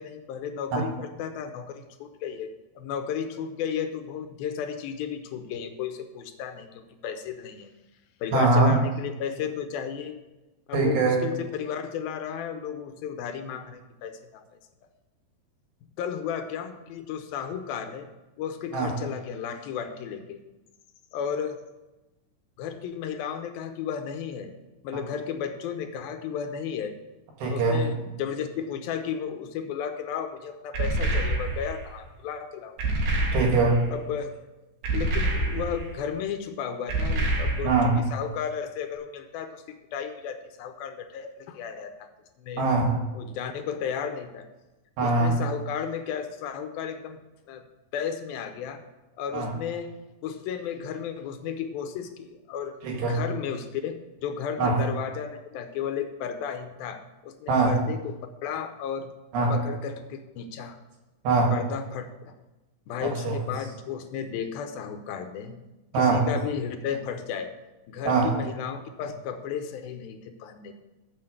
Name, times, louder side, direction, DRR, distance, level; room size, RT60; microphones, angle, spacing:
voice 1, 0.0-7.7 8.2-10.2 10.7-14.4 16.0-18.1 18.4-20.4 21.1-21.6 22.6-24.5 24.8-27.0 27.5-32.8 33.9-34.4 34.9-37.7 38.1-42.1 42.4-42.6 43.1-44.5 45.0-47.2 47.5-47.7 47.9-48.8 49.2-49.9 50.2-52.8 53.1-59.1 59.5-60.8 61.5-62.3 62.9-65.6 65.9-67.5 67.9-70.7, left 7 dB, 75° left, 7 dB, 2.4 m, -34 dB
voice 2, 8.3-8.8 10.7-11.2 18.7-18.9 27.4-27.9 33.3-33.8 37.6-38.0 42.6-43.0 45.0-45.4 49.3-49.5 52.8-53.2 54.6-54.8 57.5-57.8 59.3-59.5 61.2-61.5 63.0-63.4 65.9-66.3 68.1-68.3, right 3 dB, 90° right, -1 dB, 4.0 m, -22 dB
sound 1, 30.7-31.8 32.8-33.9 34.8-35.9 36.9-38.0, right 2 dB, 65° right, 3.1 m, -27 dB
7.6 x 6.7 x 7.9 m, 1.0 s
omnidirectional pair, 4.7 m